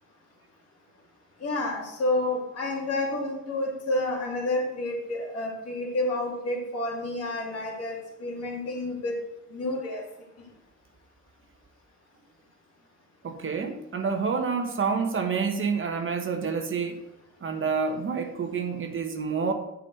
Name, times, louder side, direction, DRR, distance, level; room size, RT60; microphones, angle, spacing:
voice 1, 1.4-9.2 9.5-10.0, left 2 dB, 55° left, -1 dB, 2.7 m, -29 dB
voice 2, 13.2-17.0 17.4-19.5, right 5 dB, 45° right, 4 dB, 1.2 m, -28 dB
7.4 x 5.2 x 6.5 m, 0.84 s
cardioid pair, 90°, 30 cm